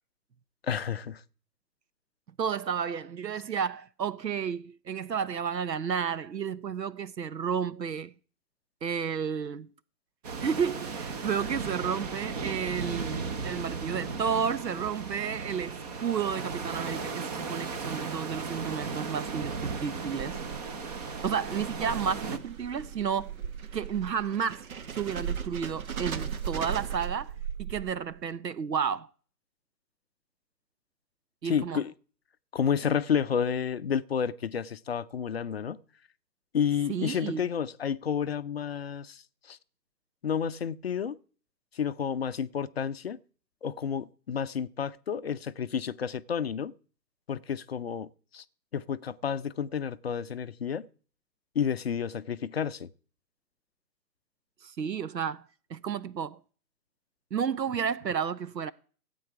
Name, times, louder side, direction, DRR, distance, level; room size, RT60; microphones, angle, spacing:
voice 1, 0.6-1.2 31.4-31.9 32.5-35.8 36.5-39.6 40.2-41.2 41.7-43.2 43.6-46.7 47.3-48.4 48.7-50.9 51.5-52.9, left 7 dB, 40° left, 0.5 m, -30 dB
voice 2, 2.4-8.1 8.8-9.7 10.4-20.4 21.2-23.3 23.7-27.3 27.6-29.1 31.4-31.8 36.9-37.4 54.6-55.4 55.7-56.4 57.3-58.7, right 7 dB, 85° right, 0.8 m, -32 dB
sound 1, 10.2-22.4, right 4 dB, 25° right, 0.8 m, -36 dB
sound 2, 20.1-28.2, right 8 dB, 60° right, 1.3 m, -38 dB
16.5 x 8.4 x 4.7 m
figure-of-eight pair, 135°, 49 cm